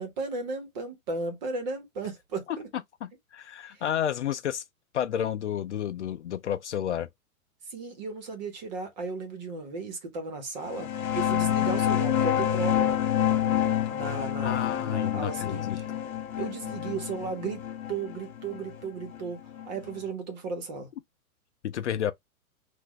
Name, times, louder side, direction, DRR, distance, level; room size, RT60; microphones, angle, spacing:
voice 1, 0.0-2.7 3.7-3.8 7.7-12.9 13.9-15.9 16.4-17.6 17.9-19.4 19.7-20.9, right 4 dB, 30° right, 1.3 m, -35 dB
voice 2, 3.0-4.6 4.9-7.1 14.4-15.8 21.6-22.1, left 10 dB, 55° left, 0.5 m, -31 dB
sound 1, 10.7-20.0, left 10 dB, 70° left, 1.3 m, -28 dB
6.2 x 2.6 x 3.1 m
hypercardioid pair, 175°, 43 cm